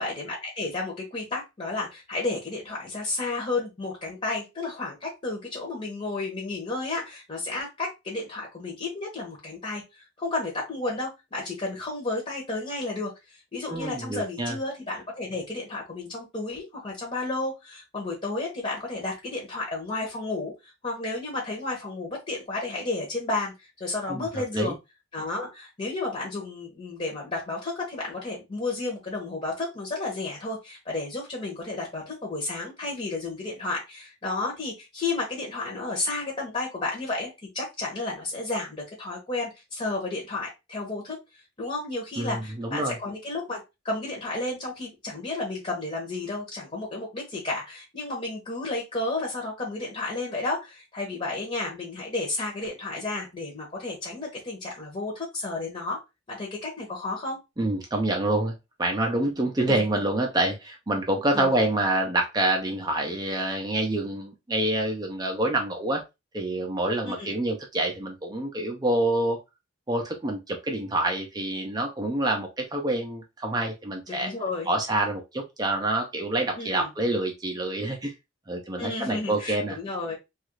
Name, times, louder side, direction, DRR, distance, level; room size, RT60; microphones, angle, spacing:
voice 1, 0.0-24.8 25.1-41.2 41.6-43.6 43.8-56.0 56.3-57.4 59.7-59.8 61.3-61.5 67.0-67.3 74.1-74.7 76.5-76.9 78.8-80.2, left 2 dB, 30° left, -1 dB, 0.8 m, -32 dB
voice 2, 13.7-14.6 24.1-24.3 24.5-24.7 42.2-43.0 57.6-58.5 58.8-66.0 66.3-69.4 69.9-74.3 74.7-78.1 78.5-79.8, right 1 dB, 20° right, 2 dB, 0.5 m, -27 dB
3.0 x 2.4 x 3.0 m, 0.23 s
head